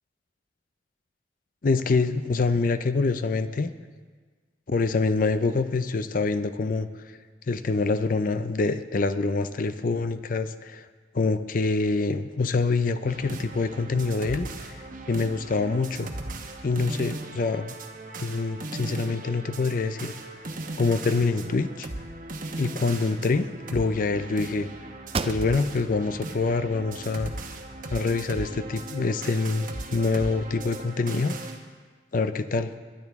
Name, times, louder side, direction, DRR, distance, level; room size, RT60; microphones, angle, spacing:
voice 1, 1.6-3.7 4.7-6.9 7.5-10.9 11.1-16.1 16.6-17.7 18.2-20.1 20.8-21.9 22.6-24.7 25.2-27.3 27.9-31.4 32.1-32.7, left 3 dB, 45° left, 11 dB, 0.5 m, -25 dB
sound 1, 13.1-31.6, right 2 dB, 45° right, 1.1 m, -38 dB
sound 2, 25.1-25.9 26.4-26.5 27.0-27.9, right 4 dB, 30° right, 0.4 m, -34 dB
21.0 x 10.5 x 3.6 m, 1.5 s
head